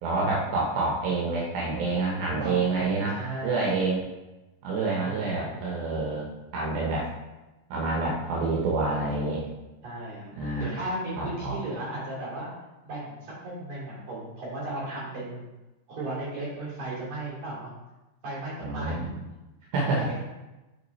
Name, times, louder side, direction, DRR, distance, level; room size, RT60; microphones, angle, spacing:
voice 1, 0.0-3.2 3.4-4.0 4.6-6.3 6.5-7.1 7.7-9.4 10.4-10.7 11.2-11.6 18.6-19.1 19.7-20.1, right 3 dB, 85° right, -3 dB, 2.7 m, -27 dB
voice 2, 2.2-3.6 5.0-5.5 9.8-10.3 10.6-12.5 12.8-15.5 15.9-17.7 18.2-19.2 19.6-20.2, right 2 dB, 55° right, -7 dB, 3.7 m, -36 dB
7.2 x 3.8 x 4.1 m, 1.1 s
omnidirectional pair, 4.1 m